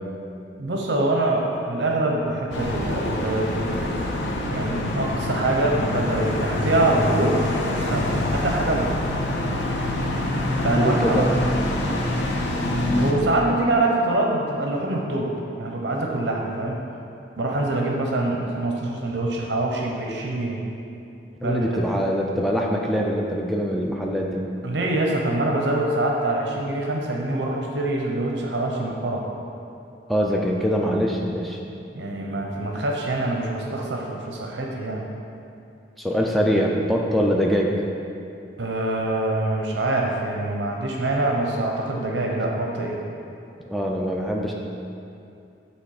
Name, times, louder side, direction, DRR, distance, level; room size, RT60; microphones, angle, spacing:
voice 1, 0.6-3.6 4.5-7.4 7.7-9.0 10.6-11.2 13.0-15.3 15.6-16.8 17.4-20.6 21.4-21.8 24.6-29.2 31.9-35.0 38.6-43.0, right 2 dB, 75° right, 0 dB, 0.7 m, -24 dB
sound 1, 2.5-13.1, left 1 dB, 75° left, 0.7 m, -25 dB
voice 2, 10.8-11.3 21.4-24.5 30.1-31.6 36.0-37.7 43.7-44.5, equal, ahead, -1 dB, 0.4 m, -23 dB
8.2 x 3.3 x 4.8 m, 2.7 s
head